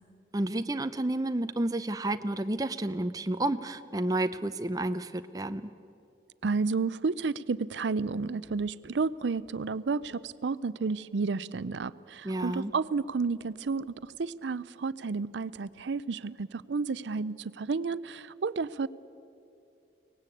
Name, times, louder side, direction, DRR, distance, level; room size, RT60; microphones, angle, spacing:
voice 1, 0.3-5.7 12.2-12.7, right 1 dB, 20° right, 10 dB, 0.6 m, -30 dB
voice 2, 6.4-18.9, right 4 dB, 90° right, 18 dB, 0.5 m, -31 dB
23.5 x 18.5 x 8.4 m, 2.6 s
head